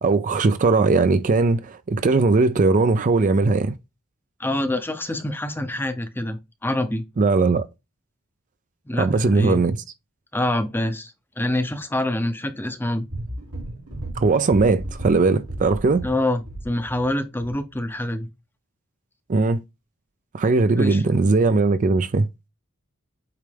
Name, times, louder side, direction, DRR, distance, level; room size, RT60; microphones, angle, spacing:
voice 1, 0.0-3.7 7.2-7.6 8.9-9.8 14.2-16.1 19.3-19.6 20.3-22.3, right 3 dB, 35° right, 0.4 m, -19 dB
voice 2, 4.4-7.0 8.9-9.6 10.3-13.1 16.0-18.3 20.8-21.0, left 1 dB, 10° left, 0.6 m, -26 dB
sound 1, 13.1-17.1 17.4-17.6, right 1 dB, 90° right, 2.6 m, -34 dB
8.3 x 3.3 x 3.4 m
head